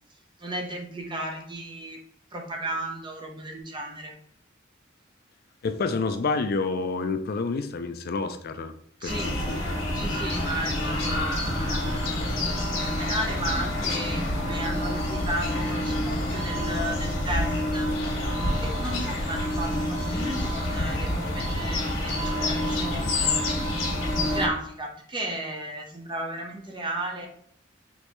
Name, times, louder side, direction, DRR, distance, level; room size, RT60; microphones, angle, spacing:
voice 1, 0.4-2.0 2.3-4.1 9.0-9.4 9.9-12.1 12.7-17.9 18.6-23.4 24.2-27.3, right 1 dB, 25° right, 1 dB, 0.9 m, -34 dB
voice 2, 5.6-8.7 9.0-9.6 10.3-10.5, left 4 dB, 50° left, 9 dB, 0.4 m, -29 dB
sound 1, 9.1-24.5, left 1 dB, 90° left, 1.7 m, -27 dB
5.3 x 3.1 x 3.1 m, 0.68 s
head